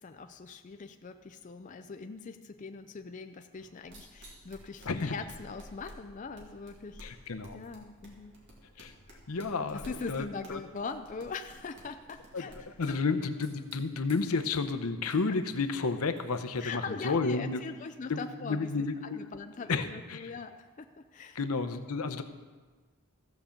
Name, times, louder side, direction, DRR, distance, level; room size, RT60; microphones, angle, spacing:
voice 1, 0.0-7.0 7.5-8.4 9.7-12.7 16.6-21.4, left 4 dB, 35° left, 7 dB, 0.4 m, -41 dB
sound 1, 3.5-17.3, equal, 55° right, 2.4 m, -54 dB
voice 2, 7.0-7.6 8.8-8.9 9.3-10.6 12.3-12.4 12.8-17.6 18.1-19.3 19.7-20.3 21.3-22.2, left 4 dB, 85° left, 10 dB, 0.7 m, -31 dB
15.0 x 5.2 x 7.2 m, 1.4 s
head